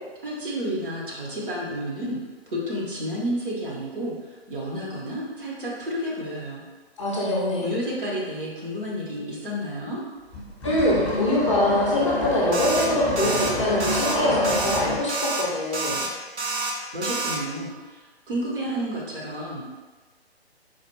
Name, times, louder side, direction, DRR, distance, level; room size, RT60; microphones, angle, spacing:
voice 1, 0.2-2.2 2.5-6.6 7.6-10.0 16.9-19.7, equal, 55° right, -5 dB, 1.2 m, -31 dB
voice 2, 7.0-7.7 10.6-16.1, left 1 dB, 30° left, -5 dB, 0.6 m, -24 dB
sound 1, 10.3-15.0, left 1 dB, ahead, 0.8 m, -28 dB
sound 2, 12.5-12.9 13.2-13.5 13.8-14.2 14.4-14.8 15.1-15.4 15.7-16.1 16.4-16.7 17.0-17.4, right 3 dB, 85° right, 0.7 m, -28 dB
4.1 x 2.4 x 3.1 m, 1.3 s
figure-of-eight pair, 140°, 32 cm